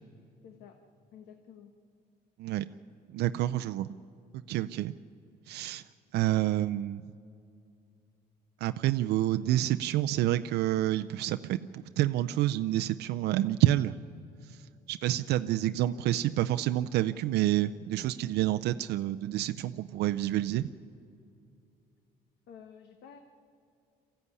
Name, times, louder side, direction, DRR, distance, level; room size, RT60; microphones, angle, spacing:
voice 1, 0.4-0.8 1.1-1.7 22.5-23.2, left 8 dB, 80° left, 6 dB, 1.4 m, -51 dB
voice 2, 3.1-3.9 4.5-4.9 5.5-5.8 6.1-7.0 8.6-14.0 14.4-14.6 14.9-20.7, right 14 dB, 75° right, 10 dB, 0.5 m, -28 dB
22.5 x 15.0 x 9.7 m, 2.5 s
cardioid pair, 110°, 17 cm